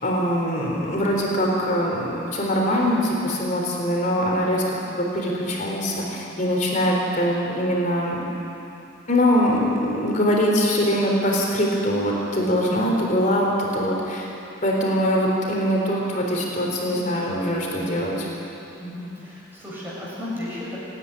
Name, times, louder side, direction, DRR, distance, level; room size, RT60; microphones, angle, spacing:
voice 1, 0.0-4.6 5.0-8.2 9.1-14.3 14.6-18.3, equal, 35° left, -2 dB, 3.8 m, -22 dB
voice 2, 18.8-20.8, left 1 dB, 10° right, -7 dB, 6.5 m, -34 dB
26.0 x 10.0 x 9.9 m, 2.9 s
head